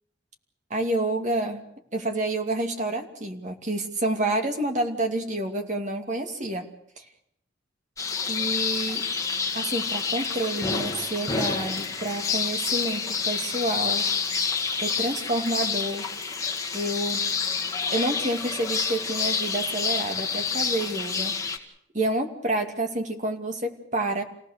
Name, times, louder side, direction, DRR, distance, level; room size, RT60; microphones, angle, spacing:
voice 1, 0.7-1.6 1.9-6.7 7.0-7.1 8.3-9.0 9.5-14.1 14.8-16.0 16.7-17.3 17.9-21.3 21.9-24.2, right 1 dB, 40° right, 3 dB, 2.6 m, -28 dB
sound 1, 8.0-21.6, left 5 dB, 20° left, 2.1 m, -28 dB
28.0 x 18.0 x 6.8 m, 0.71 s
head